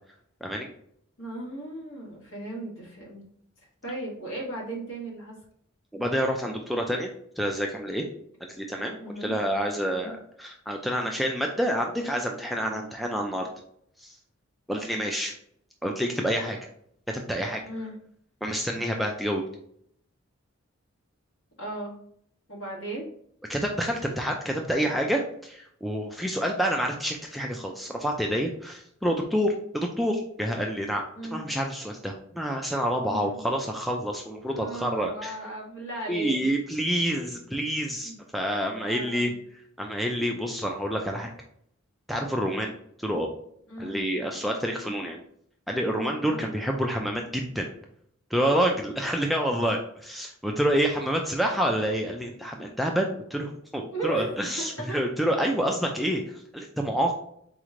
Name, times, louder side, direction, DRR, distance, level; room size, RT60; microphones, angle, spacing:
voice 1, 1.2-3.2 3.8-5.3 9.0-9.4 9.9-10.1 17.7-18.0 21.6-22.0 22.5-23.1 31.1-31.4 33.0-33.4 34.5-36.5 38.0-38.2 38.8-39.3 43.7-44.0 46.3-46.5 53.8-54.3 54.6-55.0, right 2 dB, 60° left, -3 dB, 1.8 m, -36 dB
voice 2, 5.9-8.0 8.6-13.5 14.0-14.1 14.7-15.3 15.8-16.6 17.1-17.6 18.4-19.4 23.5-31.0 31.3-35.3 36.1-39.3 39.8-41.3 42.1-43.3 43.8-45.2 45.7-47.7 48.3-57.2, equal, ahead, 1 dB, 0.3 m, -28 dB
4.2 x 3.1 x 3.7 m, 0.68 s
head